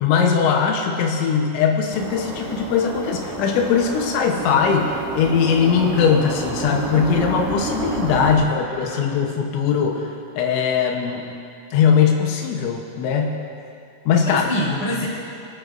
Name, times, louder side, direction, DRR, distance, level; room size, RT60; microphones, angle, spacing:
voice 1, 0.0-10.1 10.4-11.3 11.7-13.3 14.1-14.5, left 6 dB, 85° left, 1 dB, 3.2 m, -20 dB
sound 1, 1.9-8.4, right 3 dB, 45° right, 3.2 m, -30 dB
voice 2, 8.3-9.1 14.2-15.1, left 1 dB, 15° left, -7 dB, 2.4 m, -27 dB
25.0 x 9.2 x 2.5 m, 2.7 s
omnidirectional pair, 5.3 m